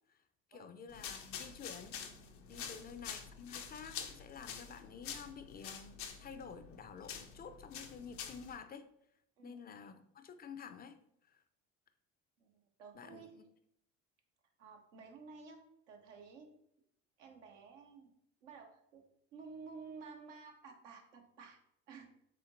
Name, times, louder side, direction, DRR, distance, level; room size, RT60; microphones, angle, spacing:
voice 1, 0.5-2.0 2.5-8.9 9.4-11.4 12.9-13.4, left 6 dB, 30° left, 10 dB, 0.3 m, -51 dB
sound 1, 0.9-8.6, left 7 dB, 90° left, 0.6 m, -47 dB
voice 2, 2.5-2.9 9.4-9.8 12.4-12.5 12.8-13.4 14.6-16.5 17.2-18.1 18.4-19.0 19.3-21.6 21.9-22.1, right 5 dB, 90° right, 3 dB, 0.8 m, -53 dB
4.3 x 3.7 x 2.5 m, 0.73 s
hypercardioid pair, 70°, 36 cm